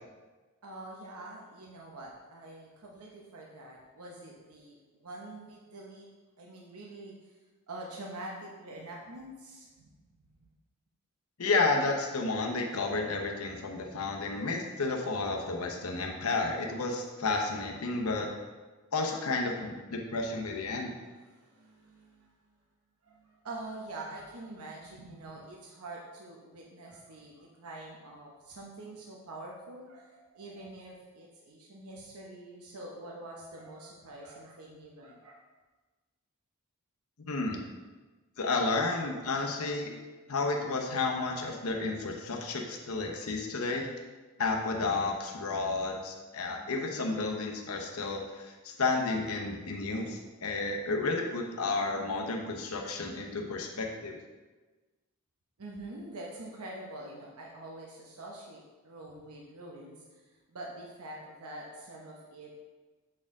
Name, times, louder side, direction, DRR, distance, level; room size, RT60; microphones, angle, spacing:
voice 1, 0.6-6.1 6.4-7.3 7.7-10.0 10.3-10.5 21.1-22.3 23.0-35.4 55.6-62.6, right 2 dB, 80° right, -2 dB, 0.9 m, -45 dB
voice 2, 11.4-18.3 18.9-20.9 37.2-37.6 38.4-40.0 40.3-43.9 44.4-54.2, left 3 dB, 70° left, 2 dB, 0.9 m, -31 dB
7.5 x 4.4 x 3.6 m, 1.3 s
head